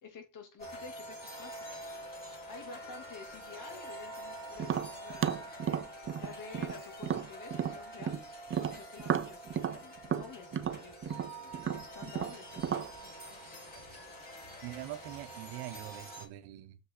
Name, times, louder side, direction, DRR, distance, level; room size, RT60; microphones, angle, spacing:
voice 1, 0.0-1.9 2.5-5.6 6.2-8.3 8.7-12.8, left 5 dB, 50° left, 3.0 m, -50 dB
sound 1, 0.6-16.3, right 1 dB, 20° left, 5.0 m, -46 dB
Tap, 4.6-8.2 8.5-12.9, right 8 dB, 30° right, 0.8 m, -33 dB
voice 2, 14.6-16.8, right 15 dB, 75° right, 1.0 m, -43 dB
7.1 x 5.5 x 4.2 m
cardioid pair, 100°, 40 cm